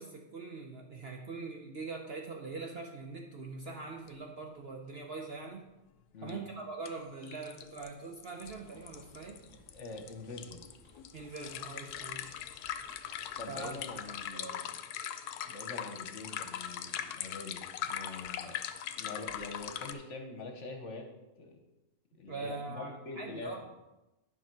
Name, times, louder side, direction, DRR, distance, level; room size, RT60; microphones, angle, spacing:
voice 1, 0.0-5.7 6.2-9.4 11.1-12.3 13.5-13.7 14.3-14.6 22.3-23.6, right 3 dB, 50° right, 2 dB, 0.8 m, -42 dB
sound 1, 4.1-4.2 4.4-4.5 6.3-6.4 6.9-7.0 7.2-19.9, left 10 dB, 90° left, 1.1 m, -40 dB
sound 2, 8.5-14.3, left 2 dB, 35° left, 1.1 m, -60 dB
voice 2, 9.7-10.6 13.4-14.7 15.5-18.6 19.0-21.1 21.4-21.6 22.1-23.6, left 3 dB, 55° left, 4 dB, 1.2 m, -44 dB
10.0 x 5.8 x 4.6 m, 1.0 s
omnidirectional pair, 1.6 m